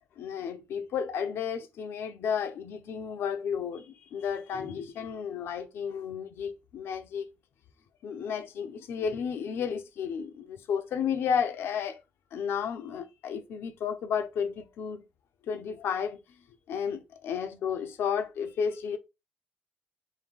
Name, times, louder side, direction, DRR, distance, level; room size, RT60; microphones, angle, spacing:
voice 1, 0.2-7.3 8.0-12.0 12.3-15.0 15.5-16.2 16.7-19.0, left 7 dB, 80° left, 0.6 m, -32 dB
3.7 x 2.6 x 3.6 m
cardioid pair, 90°, 4 cm